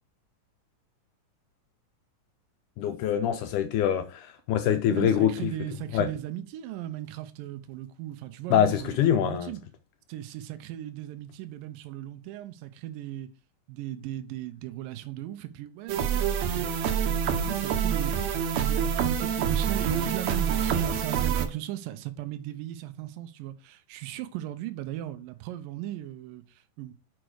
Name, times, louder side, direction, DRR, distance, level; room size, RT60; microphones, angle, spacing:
voice 1, 2.8-5.5 5.9-6.1 8.5-9.5, left 10 dB, 80° left, 2.0 m, -24 dB
voice 2, 4.7-9.6 10.1-13.3 13.7-18.3 18.5-26.9, right 13 dB, 85° right, 2.4 m, -37 dB
sound 1, 15.9-21.5, right 8 dB, 65° right, 1.9 m, -27 dB
6.2 x 5.2 x 4.7 m
omnidirectional pair, 3.9 m